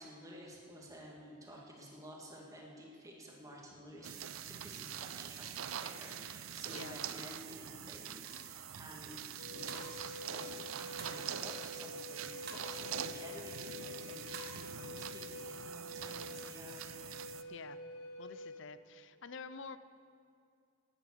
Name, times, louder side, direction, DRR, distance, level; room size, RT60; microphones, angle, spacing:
voice 1, 0.0-16.9, equal, 15° right, -2 dB, 2.1 m, -52 dB
sound 1, 4.0-17.4, right 9 dB, 85° right, 0.5 m, -44 dB
sound 2, 8.2-8.5 9.7-10.0 11.0-11.3 12.5-12.7 14.3-14.6, right 4 dB, 50° right, 1.5 m, -48 dB
Wind instrument woodwind instrument, 9.4-18.7, left 2 dB, 85° left, 0.9 m, -48 dB
voice 2, 18.2-19.8, left 5 dB, 60° left, 14 dB, 0.5 m, -48 dB
11.5 x 9.9 x 8.4 m, 2.4 s
head